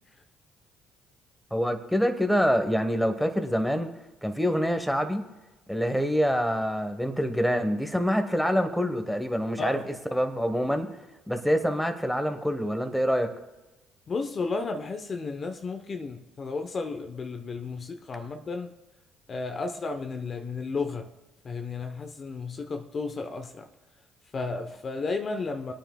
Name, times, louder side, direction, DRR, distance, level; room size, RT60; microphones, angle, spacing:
voice 1, 1.5-3.9 4.2-5.2 5.7-9.8 10.1-10.9 11.3-13.3, equal, ahead, 1.2 m, -26 dB
voice 2, 14.1-18.7 19.3-21.1 21.4-23.7 24.3-25.7, left 4 dB, 40° left, 0.9 m, -33 dB
25.0 x 9.0 x 2.3 m
supercardioid pair, 65°, 0 cm